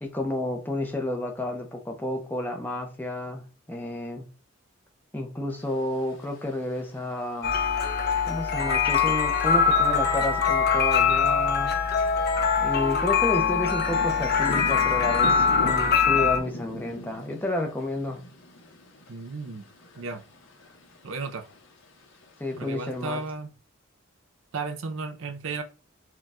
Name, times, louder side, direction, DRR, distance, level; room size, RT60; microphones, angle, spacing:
voice 1, 0.0-3.4 3.7-4.3 5.1-7.6 8.3-11.7 12.6-18.2 22.4-23.2, left 1 dB, 10° left, 0.7 m, -31 dB
sound 1, 5.6-23.3, left 1 dB, 65° left, 1.0 m, -43 dB
sound 2, 7.4-16.4, left 6 dB, 50° left, 0.7 m, -23 dB
voice 2, 19.1-19.6 20.0-20.2 21.0-21.4 22.6-23.5 24.5-25.6, right 4 dB, 70° right, 0.5 m, -34 dB
4.4 x 2.3 x 3.6 m
head